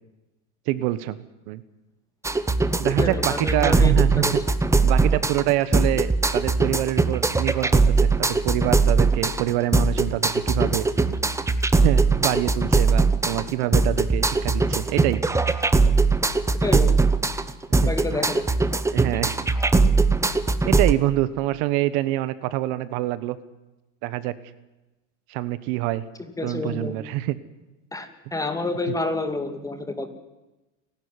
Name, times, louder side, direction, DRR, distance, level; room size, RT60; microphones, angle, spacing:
voice 1, 0.7-1.2 1.5-1.6 2.8-4.4 4.8-10.9 11.8-15.4 16.7-16.8 17.8-17.9 18.9-19.4 20.7-23.4 24.0-24.3 25.3-26.0 26.4-27.4, right 16 dB, 65° right, 15 dB, 1.3 m, -25 dB
sound 1, 2.2-20.9, right 3 dB, 10° right, 1.0 m, -21 dB
voice 2, 3.0-4.3 16.6-16.9 17.8-18.4 26.4-27.0 27.9-30.1, left 2 dB, 10° left, 7 dB, 2.5 m, -29 dB
29.0 x 12.0 x 9.8 m, 1.0 s
supercardioid pair, 130°, 37 cm